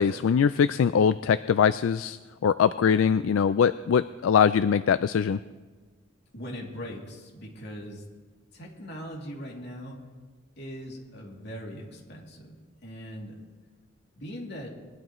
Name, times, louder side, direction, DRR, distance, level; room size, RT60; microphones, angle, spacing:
voice 1, 0.0-5.4, left 7 dB, 75° left, 14 dB, 0.3 m, -22 dB
voice 2, 6.3-8.0 8.5-10.0 10.6-12.6 12.8-13.4 14.2-14.7, equal, 55° left, -2 dB, 2.8 m, -40 dB
22.0 x 12.0 x 3.1 m, 1.4 s
head